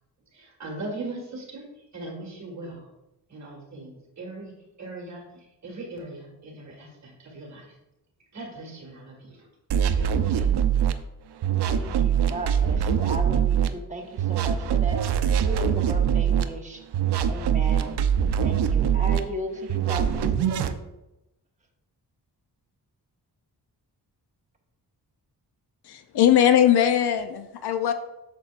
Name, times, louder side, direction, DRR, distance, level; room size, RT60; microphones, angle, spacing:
voice 1, 0.3-2.9 3.3-7.8 8.3-9.5 9.8-10.5, right 2 dB, 45° right, 0 dB, 1.9 m, -40 dB
sound 1, 9.7-10.9 11.4-13.7 14.2-16.4 16.9-19.2 19.7-20.7, right 8 dB, 80° right, 0.6 m, -23 dB
voice 2, 11.6-16.8 17.3-18.0 18.4-20.8, right 1 dB, 20° right, 0 dB, 1.2 m, -36 dB
voice 3, 25.8-27.9, left 10 dB, 75° left, 9 dB, 0.7 m, -20 dB
8.9 x 6.9 x 2.5 m, 0.93 s
wide cardioid pair, 155°, 40 cm